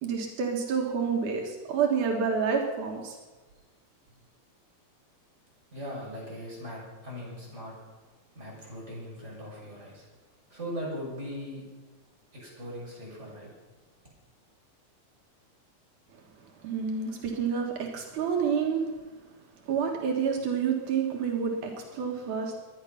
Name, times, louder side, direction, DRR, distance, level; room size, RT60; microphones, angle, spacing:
voice 1, 0.0-3.2 16.6-18.9 19.7-22.6, right 6 dB, 85° right, 1 dB, 3.2 m, -28 dB
voice 2, 5.7-7.7 8.3-10.1 10.5-11.6 12.3-13.5, equal, 20° right, -4 dB, 6.7 m, -39 dB
23.0 x 10.5 x 5.9 m, 1.3 s
omnidirectional pair, 3.4 m